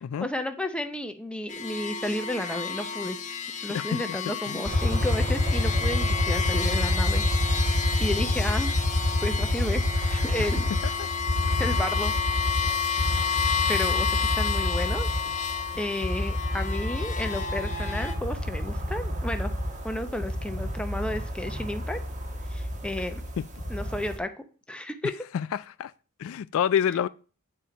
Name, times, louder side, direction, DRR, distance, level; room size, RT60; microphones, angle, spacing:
voice 1, 0.2-3.2 3.6-8.7 9.2-10.7 11.6-12.1 13.1-13.3 13.7-15.1 15.8-19.5 19.8-22.0 22.5-23.2 23.7-25.1, left 1 dB, 5° left, 0.7 m, -32 dB
sound 1, 1.5-18.1, left 6 dB, 35° left, 1.1 m, -31 dB
sound 2, 4.6-24.2, left 1 dB, 35° right, 1.2 m, -28 dB
voice 2, 25.3-25.9 26.2-27.1, left 8 dB, 65° left, 0.3 m, -28 dB
8.7 x 4.3 x 5.0 m
head